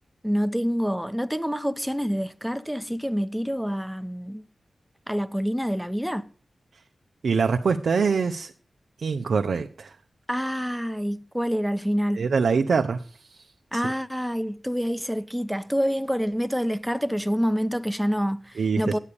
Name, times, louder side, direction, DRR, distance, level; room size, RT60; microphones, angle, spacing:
voice 1, 0.2-4.4 5.1-6.2 10.3-12.3 13.7-19.0, equal, ahead, 1.0 m, -27 dB
voice 2, 7.2-8.5 9.0-9.9 12.1-13.5 13.7-13.8 18.6-19.0, right 5 dB, 75° right, 0.7 m, -24 dB
11.0 x 8.3 x 6.9 m
cardioid pair, 50°, 0 cm